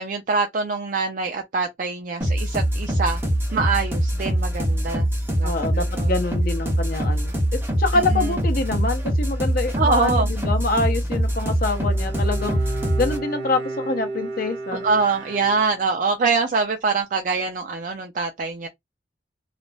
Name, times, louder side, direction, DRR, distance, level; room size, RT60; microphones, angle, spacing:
voice 1, 0.0-3.2 3.5-5.1 5.4-6.1 7.9-8.4 9.8-10.3 14.7-18.7, right 4 dB, 50° right, 0.4 m, -24 dB
sound 1, 2.2-13.2, equal, 15° right, 0.9 m, -23 dB
voice 2, 5.4-7.4 7.8-12.6 13.0-14.8, left 3 dB, 55° left, 0.7 m, -25 dB
Bowed string instrument, 11.7-16.1, right 3 dB, 90° right, 0.8 m, -33 dB
2.4 x 2.0 x 3.2 m
head